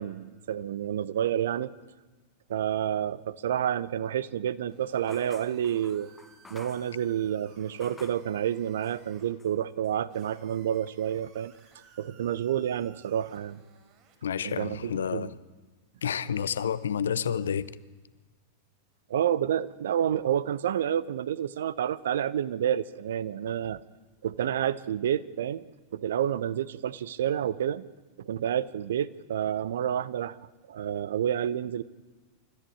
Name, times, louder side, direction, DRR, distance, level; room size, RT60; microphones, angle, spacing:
voice 1, 0.0-1.7 2.5-6.1 6.5-11.5 12.0-13.6 14.4-15.3 19.1-23.8 24.2-25.7 25.9-27.8 28.2-30.4 30.7-31.8, right 10 dB, 60° right, 0.8 m, -29 dB
sound 1, 4.7-9.3 10.1-14.3, right 6 dB, 40° right, 5.3 m, -59 dB
sound 2, 5.0-8.3 8.8-9.6 9.8-10.9, left 4 dB, 10° left, 1.5 m, -52 dB
voice 2, 14.2-15.4 16.0-17.7, left 8 dB, 65° left, 0.9 m, -29 dB
28.5 x 14.0 x 8.8 m
figure-of-eight pair, 90°, 0 cm